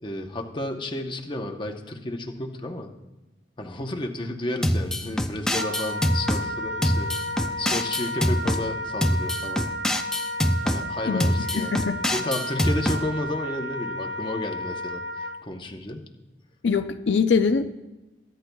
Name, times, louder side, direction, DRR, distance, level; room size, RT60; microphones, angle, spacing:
voice 1, 0.0-2.9 3.6-7.1 7.6-9.7 10.6-16.1, left 1 dB, 25° left, 3 dB, 0.9 m, -32 dB
sound 1, 4.6-6.4 6.8-8.6 9.0-10.8 11.2-13.0, equal, 5° left, 0.5 m, -24 dB
Wind instrument woodwind instrument, 5.5-15.4, left 1 dB, 65° right, 0.6 m, -32 dB
voice 2, 11.5-12.0 16.6-17.7, left 5 dB, 65° left, 7 dB, 0.5 m, -23 dB
21.5 x 10.5 x 2.3 m, 1.0 s
head